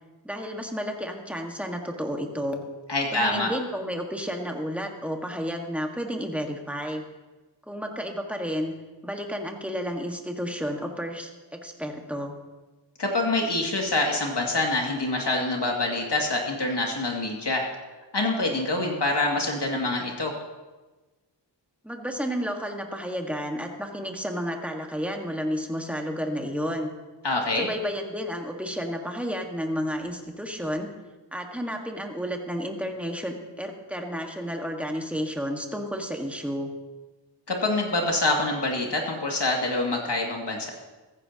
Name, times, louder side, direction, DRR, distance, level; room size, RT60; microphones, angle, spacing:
voice 1, 0.2-2.6 3.1-7.0 7.7-8.7 9.0-12.3 21.8-26.9 27.5-30.9 31.3-36.7, equal, 5° right, 2 dB, 1.5 m, -31 dB
voice 2, 2.9-3.5 13.0-17.7 18.1-20.4 27.2-27.7 37.5-40.7, left 2 dB, 65° left, 0 dB, 2.3 m, -26 dB
15.5 x 14.5 x 2.9 m, 1.2 s
wide cardioid pair, 65°, 45 cm